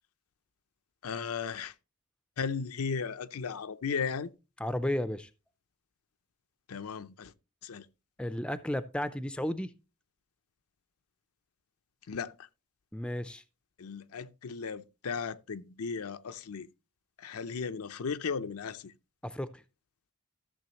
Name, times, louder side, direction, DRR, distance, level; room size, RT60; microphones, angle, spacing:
voice 1, 1.0-1.7 2.4-4.3 6.7-7.3 7.6-7.9 12.1-12.5 13.8-16.7 17.2-18.9, left 5 dB, 80° left, 0.6 m, -36 dB
voice 2, 4.6-5.3 8.2-9.7 12.9-13.4 19.2-19.6, left 1 dB, 5° left, 0.4 m, -33 dB
13.5 x 6.9 x 2.9 m
head